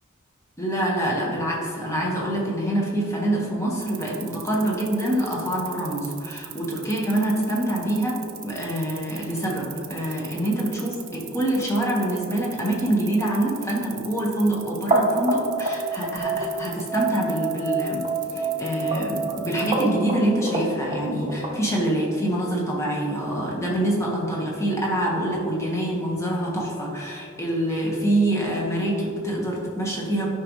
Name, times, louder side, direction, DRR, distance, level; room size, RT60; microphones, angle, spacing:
voice 1, 0.6-18.0 18.3-30.3, right 1 dB, 15° left, -3 dB, 1.5 m, -25 dB
sound 1, 3.8-19.9, right 14 dB, 75° right, 0.6 m, -40 dB
sound 2, 14.9-21.5, right 2 dB, 25° right, 1.1 m, -27 dB
12.0 x 5.4 x 3.2 m, 2.3 s
head